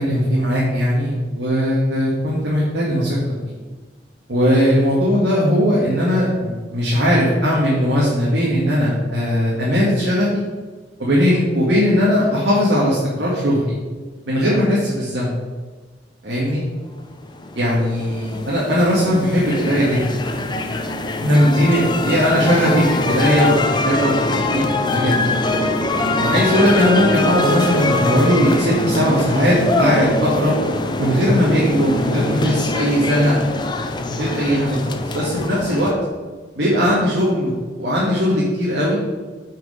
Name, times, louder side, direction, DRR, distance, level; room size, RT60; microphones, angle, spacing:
voice 1, 0.0-3.2 4.3-10.3 11.0-13.6 14.3-15.3 16.2-16.6 17.5-20.2 21.2-23.5 23.8-24.1 24.4-24.6 24.9-25.4 26.2-30.5 31.0-33.6 33.9-35.9 36.6-39.0, equal, 80° right, -7 dB, 2.1 m, -18 dB
sound 1, 17.0-35.9, left 2 dB, 25° left, 0.7 m, -23 dB
9.2 x 5.1 x 5.0 m, 1.4 s
head